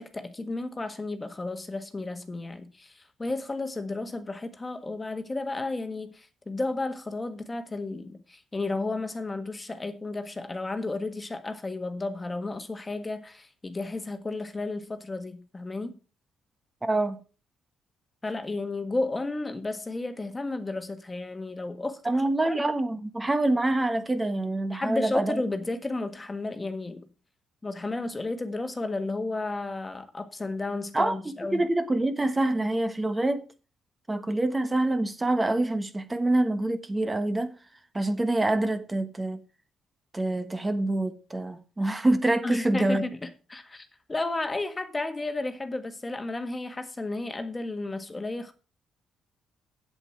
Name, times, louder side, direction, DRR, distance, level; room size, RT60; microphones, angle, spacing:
voice 1, 0.0-15.9 18.2-22.0 22.5-22.6 24.7-27.1 27.6-31.6 42.4-48.5, left 2 dB, 20° left, 1.6 m, -33 dB
voice 2, 16.8-17.2 22.0-25.4 30.9-33.4 34.1-37.5 37.9-39.4 40.1-43.1, right 2 dB, 20° right, 1.3 m, -26 dB
8.1 x 8.1 x 5.9 m
cardioid pair, 90°, 0 cm